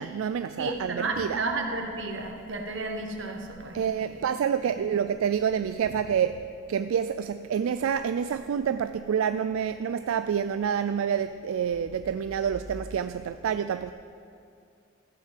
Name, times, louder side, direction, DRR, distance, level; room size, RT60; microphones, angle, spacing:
voice 1, 0.0-1.4 3.7-6.4 6.7-13.9, right 8 dB, 85° right, 11 dB, 0.3 m, -28 dB
voice 2, 0.6-4.2 4.6-4.7, right 2 dB, 65° right, 3 dB, 1.4 m, -32 dB
13.0 x 6.5 x 7.5 m, 2.4 s
head